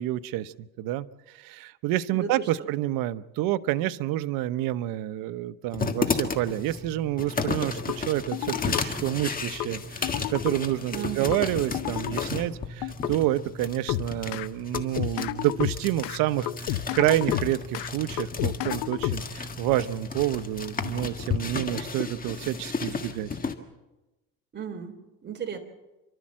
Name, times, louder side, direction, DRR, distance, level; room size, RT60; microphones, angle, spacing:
voice 1, 0.0-23.3, right 14 dB, 80° right, 13 dB, 0.9 m, -28 dB
voice 2, 2.1-2.5 10.9-11.3 24.5-25.6, right 8 dB, 30° right, 3 dB, 3.5 m, -35 dB
sound 1, 5.7-23.5, left 4 dB, 25° left, 1.7 m, -33 dB
sound 2, 7.9-8.0 8.3-8.8 9.6-9.7 10.0-10.5 11.3-11.4 11.7-12.3 12.8-13.1 13.9-14.5 14.7-16.2 16.5-17.9 18.2-19.5, left 16 dB, 80° left, 0.9 m, -30 dB
29.5 x 12.5 x 7.5 m, 1.1 s
cardioid pair, 130°, 33 cm